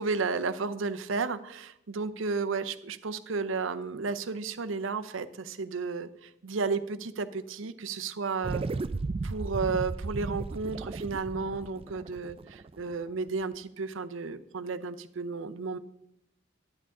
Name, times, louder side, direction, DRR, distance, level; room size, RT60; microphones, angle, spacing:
voice 1, 0.0-8.6 9.2-15.8, right 4 dB, 90° right, 12 dB, 0.6 m, -33 dB
sound 1, 8.4-13.1, right 3 dB, 30° right, 0.4 m, -35 dB
11.0 x 9.7 x 3.7 m, 0.80 s
head